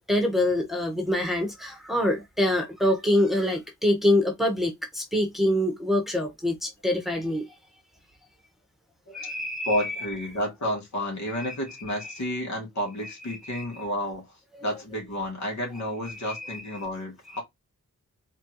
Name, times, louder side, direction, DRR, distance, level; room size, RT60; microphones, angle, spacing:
voice 1, 0.1-7.5 9.1-10.0 11.5-11.6 12.0-12.2 13.3-13.7 14.5-14.6 16.1-16.6 17.3-17.4, left 1 dB, ahead, 1.3 m, -25 dB
voice 2, 9.7-14.2 14.6-17.4, left 1 dB, 60° left, 2.6 m, -31 dB
4.3 x 3.7 x 3.1 m
wide cardioid pair, 85°, 32 cm